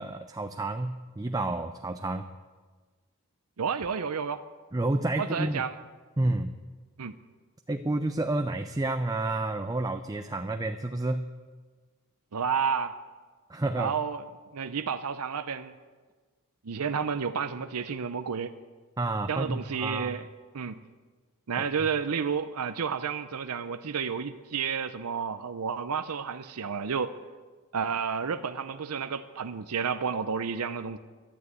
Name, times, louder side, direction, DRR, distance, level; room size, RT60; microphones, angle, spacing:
voice 1, 0.0-2.2 4.7-5.6 6.2-6.5 7.7-11.3 13.5-13.9 19.0-20.2 21.6-21.7, right 2 dB, 15° right, 7 dB, 0.5 m, -30 dB
voice 2, 3.6-4.4 5.2-5.8 7.0-7.2 12.3-13.0 13.8-14.2 14.5-15.7 16.6-18.5 19.3-20.3 20.5-20.8 21.5-27.1 27.7-31.0, right 6 dB, 80° right, 11 dB, 0.6 m, -31 dB
12.5 x 12.0 x 8.2 m, 1.4 s
head